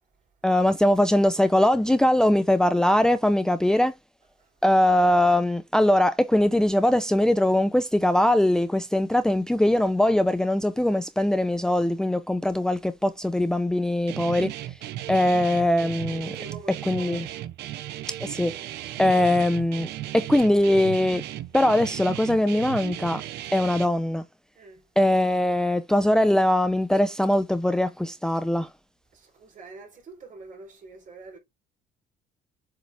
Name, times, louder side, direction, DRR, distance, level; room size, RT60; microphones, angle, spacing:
voice 1, 0.4-3.9 4.6-14.5 15.1-16.4 16.9-17.3 18.2-18.5 19.0-21.2 21.5-23.2 23.5-24.2 25.0-28.7, left 1 dB, 5° left, 0.6 m, -21 dB
Guitar, 14.1-23.9, right 13 dB, 80° right, 0.8 m, -36 dB
voice 2, 16.3-17.4 24.6-24.9 29.1-31.4, right 4 dB, 50° right, 3.8 m, -45 dB
7.7 x 4.8 x 3.4 m
cardioid pair, 110°, 17 cm